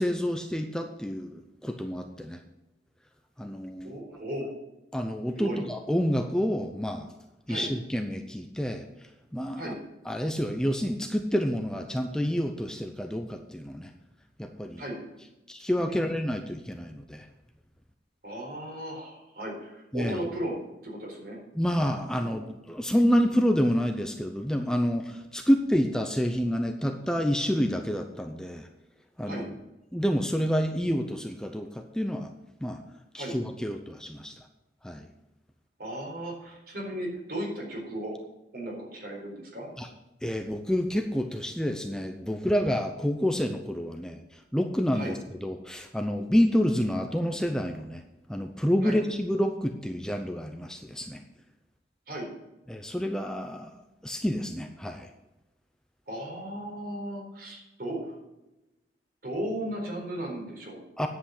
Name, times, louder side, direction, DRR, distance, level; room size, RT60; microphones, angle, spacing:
voice 1, 0.0-2.4 3.4-4.0 4.9-7.1 7.5-8.8 9.3-9.7 10.1-13.9 14.4-14.8 15.5-17.3 19.9-20.2 21.6-28.7 29.2-29.5 29.9-32.3 32.6-32.8 33.1-34.3 34.8-35.1 39.8-39.9 40.2-44.2 44.5-48.0 48.3-51.2 52.7-53.7 54.0-55.1 61.0-61.1, equal, 5° left, 5 dB, 0.6 m, -28 dB
voice 2, 3.8-4.5 5.4-5.6 7.5-7.7 9.6-9.8 14.8-15.0 15.9-16.0 18.2-20.5 20.8-21.4 22.2-22.4 29.3-29.5 33.2-33.4 35.8-38.1 38.5-39.7 44.9-45.2 48.8-49.0 52.1-52.3 56.1-58.1 59.2-60.8, right 1 dB, 55° right, -1 dB, 4.2 m, -36 dB
10.0 x 8.1 x 6.6 m, 0.99 s
head